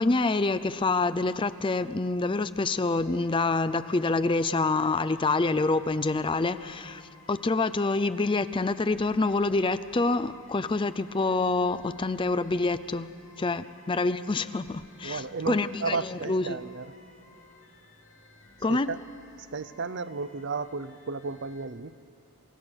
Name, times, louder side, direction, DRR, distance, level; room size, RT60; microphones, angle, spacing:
voice 1, 0.0-13.1 13.4-16.6 18.6-19.0, left 3 dB, 20° left, 13 dB, 0.4 m, -27 dB
sound 1, 2.9-21.7, left 2 dB, 60° left, 3.2 m, -56 dB
voice 2, 15.0-16.9 18.7-19.0 19.4-21.9, right 4 dB, 55° right, 14 dB, 0.6 m, -33 dB
29.0 x 16.5 x 6.4 m, 2.6 s
head